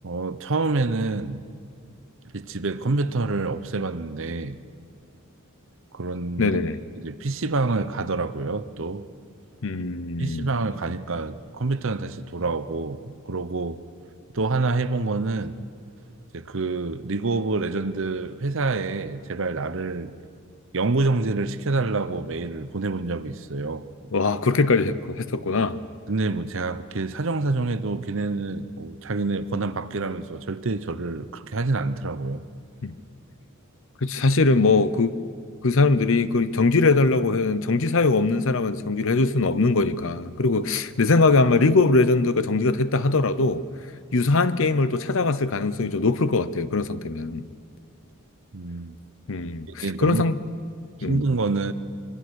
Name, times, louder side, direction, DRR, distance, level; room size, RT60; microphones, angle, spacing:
voice 1, 0.0-1.4 2.3-4.6 5.9-6.6 7.0-9.0 10.2-13.8 14.3-15.6 16.3-20.1 20.7-23.9 26.1-32.4 48.5-49.0 49.7-50.2 51.1-51.7, right 3 dB, 60° right, 0.9 m, -27 dB
voice 2, 6.4-6.8 9.6-10.5 24.1-25.8 32.8-32.9 34.0-35.1 35.6-43.6 44.1-47.5 49.3-50.3 51.0-51.2, left 3 dB, 65° left, 0.8 m, -21 dB
25.0 x 23.0 x 6.4 m
head